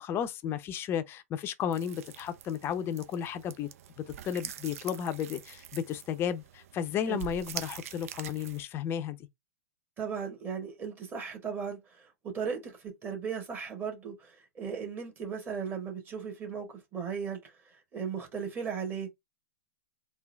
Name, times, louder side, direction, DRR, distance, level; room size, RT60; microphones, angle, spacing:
voice 1, 0.0-3.7 4.0-9.2, left 9 dB, 25° left, 0.6 m, -33 dB
sound 1, 1.7-8.6, right 10 dB, 65° right, 0.5 m, -45 dB
voice 2, 10.0-19.1, right 6 dB, 20° right, 1.6 m, -37 dB
3.7 x 2.5 x 3.3 m
hypercardioid pair, 120°, 8 cm